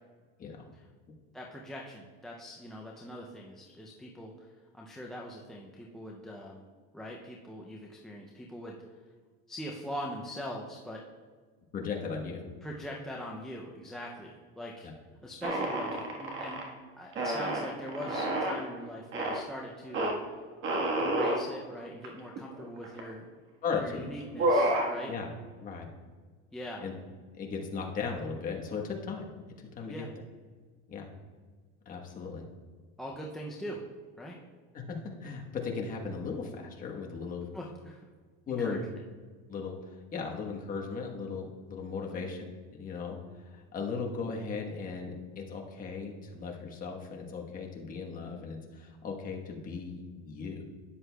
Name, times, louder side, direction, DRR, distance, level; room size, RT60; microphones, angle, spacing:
voice 1, 1.3-4.5 4.7-6.7 6.9-8.8 9.5-11.0 12.6-14.9 15.2-16.6 17.0-20.1 21.0-23.3 23.8-25.1 26.5-26.9 29.9-30.1 33.0-33.8 34.2-34.4 37.5-38.0 38.5-38.8 42.1-42.2, equal, ahead, -3 dB, 0.4 m, -42 dB
voice 2, 11.7-12.5 23.6-24.0 25.1-25.3 25.6-25.9 26.8-26.9 27.4-29.3 29.6-30.0 30.9-31.1 31.8-32.5 34.7-37.5 38.5-38.8 39.5-42.4 42.7-43.2 43.4-50.6, left 5 dB, 25° left, 0 dB, 1.1 m, -37 dB
sound 1, 15.4-16.7 17.1-18.6 19.1-19.4 19.9-20.1 20.6-21.4 22.0-22.1 22.4-23.1 23.7-23.9 24.2-24.9, right 1 dB, 35° right, 1.4 m, -29 dB
12.5 x 9.6 x 2.2 m, 1.5 s
supercardioid pair, 155°, 33 cm